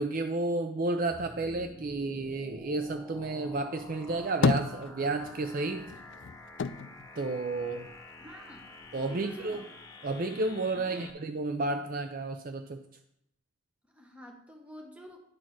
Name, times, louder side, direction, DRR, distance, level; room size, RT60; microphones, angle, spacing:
voice 1, 0.0-5.9 7.2-7.9 8.9-9.6 10.0-12.8, right 2 dB, 40° right, 7 dB, 0.4 m, -32 dB
sound 1, 1.1-11.1, left 2 dB, 15° left, 0.8 m, -49 dB
sound 2, 4.0-5.5 5.8-8.2 8.5-9.4, left 5 dB, 55° left, 0.4 m, -32 dB
voice 2, 8.2-8.7 9.0-9.7 10.7-11.1 13.9-15.2, right 1 dB, 5° right, 1 dB, 1.1 m, -48 dB
10.5 x 4.1 x 6.2 m, 0.78 s
head